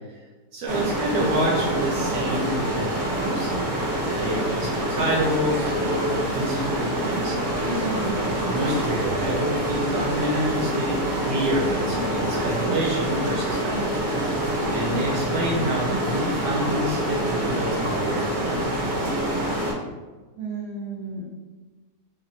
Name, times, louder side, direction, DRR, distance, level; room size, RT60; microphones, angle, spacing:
voice 1, 0.5-7.4 8.4-13.8 14.7-18.6, right 1 dB, 85° right, -4 dB, 1.3 m, -28 dB
sound 1, 0.7-19.7, right 1 dB, 50° right, 0.5 m, -26 dB
voice 2, 7.6-8.2 20.4-21.2, right 3 dB, 70° right, -8 dB, 1.1 m, -32 dB
3.3 x 2.1 x 2.5 m, 1.3 s
omnidirectional pair, 1.7 m